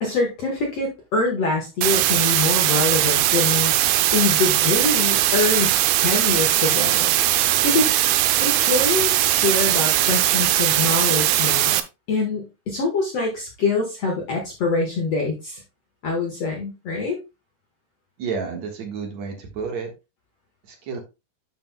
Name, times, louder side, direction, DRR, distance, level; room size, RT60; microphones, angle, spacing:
voice 1, 0.0-3.8 4.1-5.7 6.0-7.1 7.6-7.9 8.4-11.8 12.1-15.6 16.0-17.2, left 3 dB, 60° left, 0 dB, 1.7 m, -24 dB
sound 1, 1.8-11.8, right 14 dB, 80° right, 2.3 m, -19 dB
voice 2, 18.2-19.9 20.6-21.0, right 5 dB, 55° right, 3 dB, 2.3 m, -30 dB
11.0 x 5.7 x 2.2 m, 0.26 s
omnidirectional pair, 4.5 m